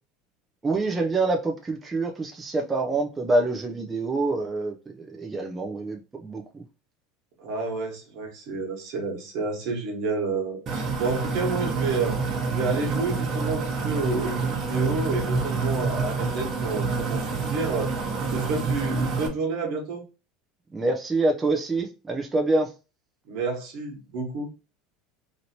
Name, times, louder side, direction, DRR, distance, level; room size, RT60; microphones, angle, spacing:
voice 1, 0.6-6.6 20.7-22.7, right 2 dB, 15° right, 0.5 m, -26 dB
voice 2, 7.4-12.2 12.5-17.9 18.3-20.0 23.3-24.5, right 3 dB, 65° right, 1.3 m, -30 dB
sound 1, 10.7-19.3, right 4 dB, 40° right, 1.0 m, -27 dB
3.0 x 2.7 x 2.8 m
supercardioid pair, 115°, 0 cm